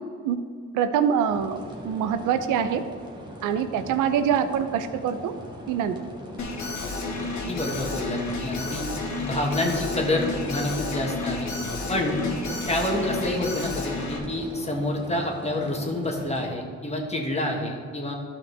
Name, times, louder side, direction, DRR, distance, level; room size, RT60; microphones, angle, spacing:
voice 1, 0.7-1.6 1.8-2.8 3.4-5.3 5.7-6.0, right 8 dB, 90° right, 11 dB, 0.6 m, -24 dB
sound 1, 1.3-16.5, equal, 15° right, 1.6 m, -42 dB
Alarm, 6.4-14.2, left 3 dB, 70° left, 1.6 m, -31 dB
voice 2, 7.5-8.8 9.2-11.5 11.9-12.2 12.7-18.1, left 1 dB, 20° left, 0 dB, 1.6 m, -28 dB
12.0 x 5.8 x 3.4 m, 2.1 s
cardioid pair, 75°, 30 cm